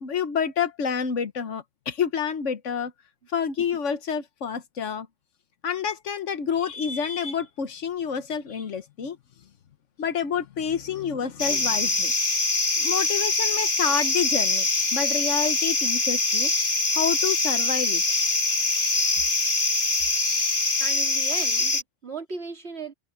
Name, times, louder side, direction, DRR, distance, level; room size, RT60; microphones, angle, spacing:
voice 1, 0.0-2.9 3.3-5.1 5.6-9.2 10.0-12.1 12.5-16.5 16.9-18.0, left 7 dB, 70° left, 1.4 m, -28 dB
sound 1, 11.4-21.8, left 3 dB, 40° left, 2.2 m, -24 dB
voice 2, 20.8-22.9, right 4 dB, 55° right, 3.4 m, -37 dB
omnidirectional pair, 1.3 m